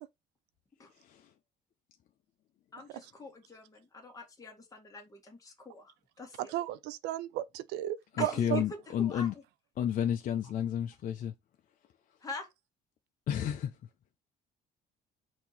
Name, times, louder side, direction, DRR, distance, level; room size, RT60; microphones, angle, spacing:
voice 1, 1.0-1.3 8.1-9.3 9.8-11.3 13.3-13.7, left 9 dB, 55° left, 0.6 m, -31 dB
voice 2, 2.7-6.5 8.2-9.3 12.2-12.5, left 2 dB, 20° left, 1.6 m, -45 dB
voice 3, 6.4-8.6, right 14 dB, 90° right, 0.4 m, -34 dB
4.4 x 2.8 x 4.0 m
cardioid pair, 110°, 17 cm